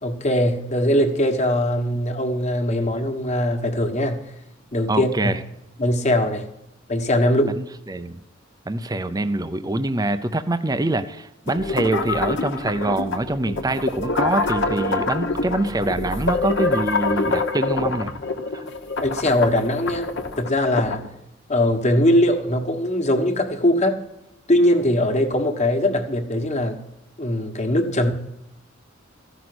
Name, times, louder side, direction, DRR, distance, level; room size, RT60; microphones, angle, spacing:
voice 1, 0.0-4.3 4.7-5.4 5.8-6.5 6.9-7.6 19.0-21.1 21.5-24.0 24.5-26.8 27.2-28.1, left 1 dB, 35° left, 1.5 m, -21 dB
voice 2, 4.9-5.4 7.5-8.2 8.7-18.1 18.5-18.6, right 2 dB, 20° right, 0.5 m, -25 dB
sound 1, 11.5-21.1, left 3 dB, 65° left, 1.3 m, -26 dB
15.0 x 6.1 x 9.3 m
head